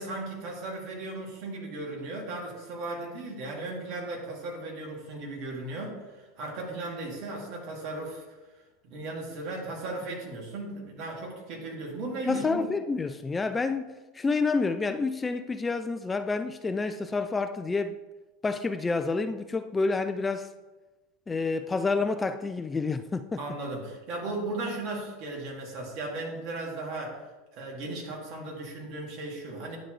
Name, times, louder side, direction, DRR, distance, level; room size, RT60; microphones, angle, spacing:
voice 1, 0.0-8.2 8.8-12.7 23.4-27.2 27.5-29.8, right 2 dB, 55° right, 2.4 m, -36 dB
voice 2, 12.3-18.0 18.4-20.5 21.3-23.4, left 4 dB, 15° left, 0.3 m, -29 dB
10.5 x 4.0 x 3.3 m
supercardioid pair, 110°, 0 cm